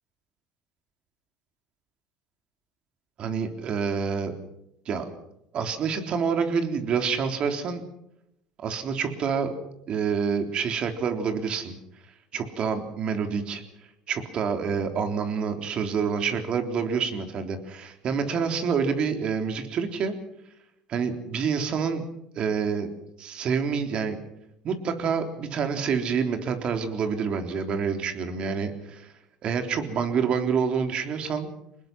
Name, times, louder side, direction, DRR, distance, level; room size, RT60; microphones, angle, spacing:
voice 1, 3.2-4.3 4.9-5.1 5.5-7.8 8.6-9.5 9.9-11.8 12.3-13.6 14.1-20.1 20.9-22.1 22.3-22.9 23.2-24.2 24.6-29.1 29.4-31.5, right 6 dB, 50° right, 6 dB, 3.7 m, -27 dB
25.0 x 20.5 x 6.1 m, 0.82 s
supercardioid pair, 85°, 2 cm